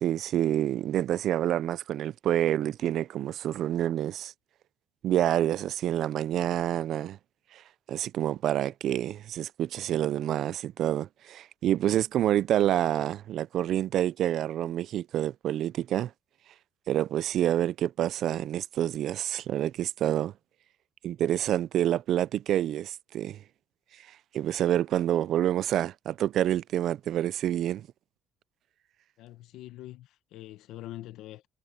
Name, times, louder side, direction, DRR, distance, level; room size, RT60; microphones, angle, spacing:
voice 1, 0.0-4.3 5.0-7.2 7.5-7.6 7.9-16.1 16.9-20.3 21.0-23.4 24.3-27.9, right 11 dB, 45° right, 0.3 m, -27 dB
voice 2, 29.2-31.5, left 14 dB, 60° left, 1.1 m, -44 dB
cardioid pair, 170°, 0 cm